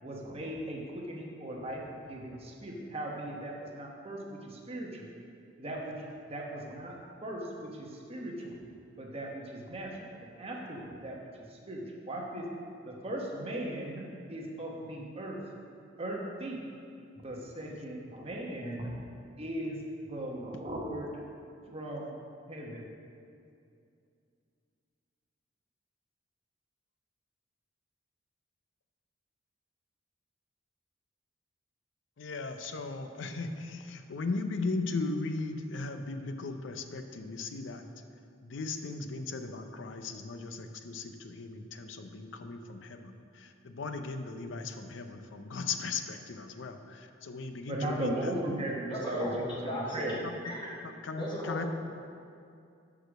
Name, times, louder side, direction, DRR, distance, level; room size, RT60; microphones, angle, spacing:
voice 1, 0.0-5.1 5.6-6.0 6.3-7.0 7.2-8.5 9.0-9.9 10.2-11.2 11.5-12.5 12.8-14.0 14.3-15.4 16.0-16.6 17.2-18.9 19.4-19.8 20.1-21.2 21.7-22.1 22.5-22.9 47.7-50.1, right 1 dB, 30° right, -1 dB, 1.0 m, -38 dB
voice 2, 32.2-37.8 38.4-43.1 43.4-48.3 51.1-51.7, left 3 dB, 80° left, 7 dB, 0.5 m, -37 dB
voice 3, 48.9-50.2 50.4-50.7 51.2-51.7, equal, 25° left, -5 dB, 1.5 m, -36 dB
6.5 x 4.9 x 6.2 m, 2.5 s
head